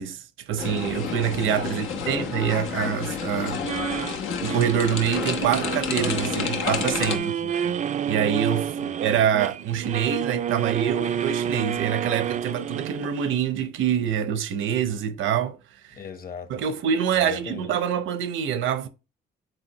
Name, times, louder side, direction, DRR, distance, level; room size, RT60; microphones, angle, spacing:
voice 1, 0.0-3.7 4.4-7.3 8.0-15.6 15.8-16.0 16.5-18.9, right 8 dB, 80° right, 0.9 m, -25 dB
sound 1, 0.6-7.2, left 6 dB, 85° left, 0.9 m, -30 dB
voice 2, 1.6-2.3 3.6-4.0 7.2-7.8 8.8-8.9 16.0-16.6 17.1-17.7, left 6 dB, 50° left, 1.2 m, -40 dB
sound 2, 3.6-13.4, right 9 dB, 40° right, 0.4 m, -30 dB
8.2 x 4.1 x 3.0 m
cardioid pair, 90°, 20 cm